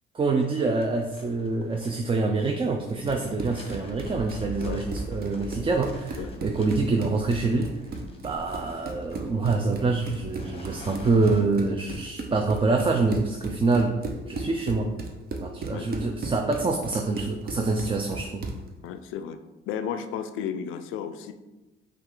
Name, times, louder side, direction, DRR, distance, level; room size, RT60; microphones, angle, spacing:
voice 1, 0.1-7.7 8.2-14.0 14.3-14.9 15.4-18.5, right 3 dB, 25° right, 3 dB, 0.4 m, -26 dB
sound 1, 0.6-11.5, left 2 dB, 30° left, 0.8 m, -47 dB
Run, 2.9-18.7, right 3 dB, 50° right, 0.7 m, -36 dB
sound 2, 4.1-10.7, equal, 65° right, 1.3 m, -42 dB
voice 2, 18.8-19.4 19.7-21.3, left 8 dB, 90° left, 9 dB, 0.4 m, -33 dB
5.5 x 2.5 x 3.7 m, 1.1 s
cardioid pair, 90°, 20 cm